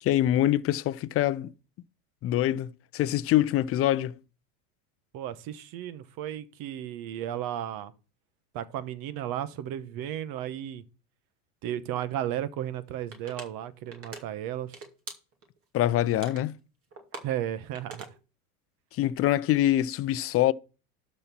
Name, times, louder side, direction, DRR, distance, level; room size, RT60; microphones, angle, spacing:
voice 1, 0.0-1.5 2.2-4.2 15.7-16.6 18.9-20.5, left 13 dB, 30° left, 0.5 m, -25 dB
voice 2, 5.1-7.9 8.5-10.8 11.6-14.7 17.2-18.1, right 11 dB, 50° right, 1.1 m, -34 dB
sound 1, 13.1-13.4 13.9-14.2 14.6-15.6 16.0-16.5 16.9-18.2, right 4 dB, 30° right, 2.6 m, -42 dB
12.0 x 4.4 x 5.9 m
hypercardioid pair, 100°, 44 cm